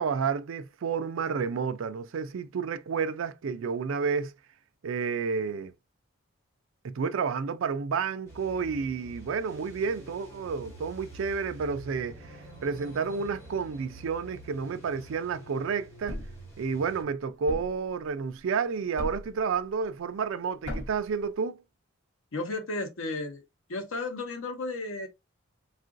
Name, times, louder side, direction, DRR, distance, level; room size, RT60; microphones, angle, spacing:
voice 1, 0.0-4.3 4.8-5.7 6.8-16.2 16.6-21.6, right 5 dB, 75° right, 0.4 m, -30 dB
sound 1, 8.3-17.0, right 1 dB, 15° left, 1.6 m, -47 dB
Thump thud, 16.1-16.4 17.5-17.8 19.0-19.4 20.6-21.1, equal, 65° left, 1.1 m, -36 dB
voice 2, 22.3-23.4 23.7-25.1, left 2 dB, 90° left, 0.8 m, -33 dB
3.7 x 2.4 x 2.4 m
head